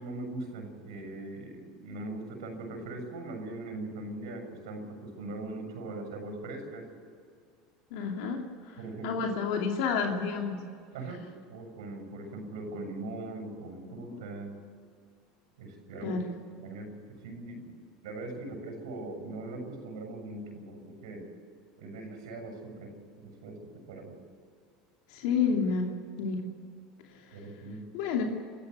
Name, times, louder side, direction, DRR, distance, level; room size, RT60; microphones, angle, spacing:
voice 1, 0.0-6.9 8.8-9.2 10.9-14.5 15.6-16.2 16.6-17.0 17.2-17.7 18.0-21.3 21.8-24.2 27.3-27.9, right 2 dB, 85° right, 5 dB, 6.9 m, -40 dB
voice 2, 7.9-8.4 9.0-10.6 16.0-16.3 25.1-25.9 26.2-26.4 27.9-28.2, left 5 dB, 75° left, 2 dB, 2.6 m, -29 dB
26.5 x 14.0 x 8.1 m, 2.2 s
supercardioid pair, 110°, 3 cm